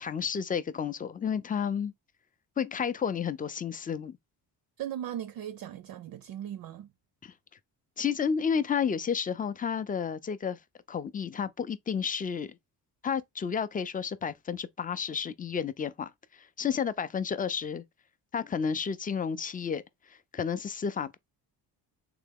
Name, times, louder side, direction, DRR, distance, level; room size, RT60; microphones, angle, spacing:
voice 1, 0.0-1.9 2.6-4.2 7.2-7.3 8.0-10.6 10.9-12.5 13.0-17.8 18.3-19.8 20.1-21.2, left 7 dB, 20° left, 0.4 m, -31 dB
voice 2, 4.8-6.9, right 11 dB, 55° right, 0.4 m, -38 dB
3.3 x 2.9 x 3.5 m
cardioid pair, 75°, 42 cm